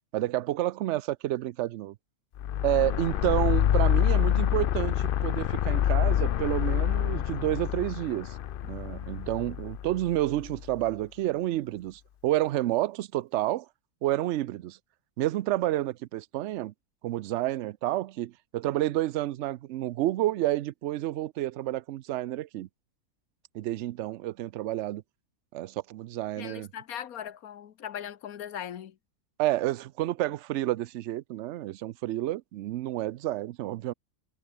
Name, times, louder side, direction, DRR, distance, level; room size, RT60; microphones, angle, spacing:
voice 1, 0.1-2.0 2.6-8.4 8.6-13.7 14.0-14.8 15.2-16.7 17.0-22.7 23.5-25.0 25.5-26.7 29.4-33.9, right 15 dB, 65° right, 0.8 m, -30 dB
sound 1, 2.4-10.7, left 11 dB, 65° left, 0.5 m, -27 dB
voice 2, 26.4-28.9, left 9 dB, 80° left, 1.4 m, -39 dB
omnidirectional pair, 1.5 m